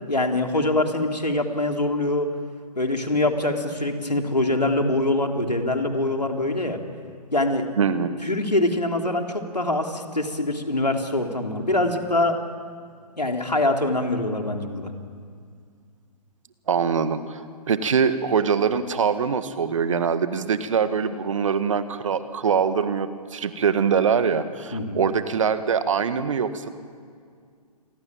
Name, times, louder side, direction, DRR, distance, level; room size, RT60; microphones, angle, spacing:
voice 1, 0.1-2.3 2.7-6.8 7.3-7.7 8.2-12.4 13.2-14.9 24.7-25.0, left 2 dB, 85° left, 3 dB, 3.5 m, -24 dB
voice 2, 7.8-8.1 16.7-17.4 17.7-26.7, right 6 dB, 50° right, 11 dB, 1.7 m, -23 dB
28.0 x 22.5 x 9.0 m, 2.1 s
figure-of-eight pair, 130°, 20 cm